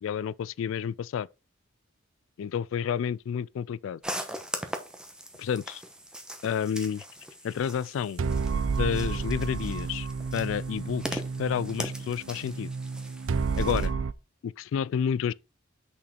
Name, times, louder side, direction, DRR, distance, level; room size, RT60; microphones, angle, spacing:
voice 1, 0.0-1.3 2.4-4.0 5.4-5.8 6.4-7.0 7.4-8.2 8.8-10.1 10.3-12.7 13.6-13.9 14.4-15.3, left 8 dB, 70° left, 0.3 m, -30 dB
sound 1, 4.0-13.9, equal, 5° right, 1.1 m, -40 dB
sound 2, 8.2-14.1, right 5 dB, 70° right, 0.4 m, -31 dB
6.3 x 5.8 x 4.4 m
head